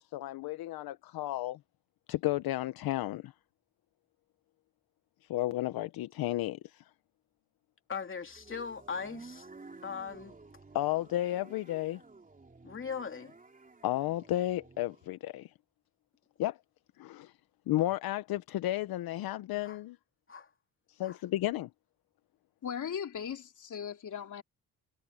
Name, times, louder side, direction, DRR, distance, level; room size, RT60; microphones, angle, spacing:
voice 1, 0.1-1.6 2.1-3.3 5.3-6.8 10.7-12.0 13.8-15.5 16.4-16.6 17.0-17.3 17.7-20.0 20.9-21.7, left 15 dB, 75° left, 0.9 m, -33 dB
voice 2, 7.9-9.5 9.8-10.3 12.6-13.4 19.6-19.8 20.3-20.5 21.0-21.2, left 6 dB, 35° left, 3.0 m, -39 dB
sound 1, 8.2-15.1, right 3 dB, 20° right, 3.3 m, -53 dB
voice 3, 22.6-24.4, left 8 dB, 55° left, 3.7 m, -38 dB
cardioid pair, 85°, 36 cm